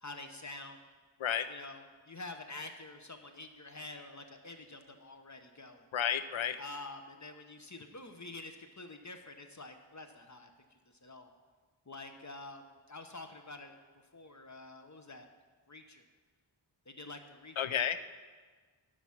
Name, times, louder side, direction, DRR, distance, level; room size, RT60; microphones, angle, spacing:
voice 1, 0.0-0.8 1.5-5.9 6.6-11.3 11.9-13.8 14.1-15.3 15.7-16.0 16.9-17.6 17.8-17.9, left 2 dB, 35° left, 6 dB, 0.8 m, -48 dB
voice 2, 5.9-6.6 17.6-18.0, left 9 dB, 75° left, 12 dB, 0.6 m, -32 dB
12.0 x 4.8 x 5.7 m, 1.5 s
wide cardioid pair, 45°, 48 cm